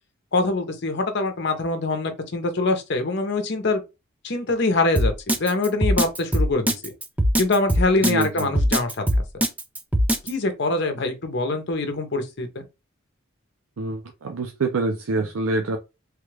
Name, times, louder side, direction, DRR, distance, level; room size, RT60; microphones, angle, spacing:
voice 1, 0.3-3.8 4.2-6.9 7.4-9.2 10.2-12.6, left 3 dB, 55° left, 0.7 m, -24 dB
Drum kit, 5.0-10.3, equal, 10° right, 0.3 m, -20 dB
voice 2, 8.0-8.5 13.8-15.8, right 3 dB, 85° right, 0.5 m, -26 dB
3.2 x 2.3 x 3.2 m
head